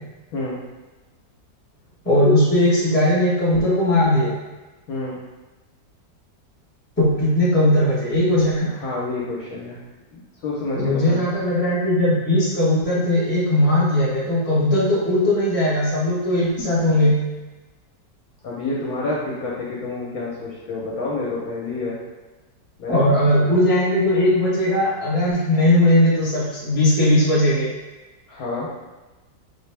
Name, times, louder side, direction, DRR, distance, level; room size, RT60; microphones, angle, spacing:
voice 1, 2.0-4.3 7.0-8.7 10.7-17.2 22.9-27.7, left 1 dB, 10° left, -7 dB, 0.7 m, -18 dB
voice 2, 4.9-5.2 8.8-9.8 10.1-11.2 18.4-22.0 22.8-23.0 23.6-23.7 28.3-28.7, left 2 dB, 65° left, -5 dB, 1.1 m, -28 dB
4.2 x 2.2 x 3.3 m, 1.2 s
omnidirectional pair, 1.9 m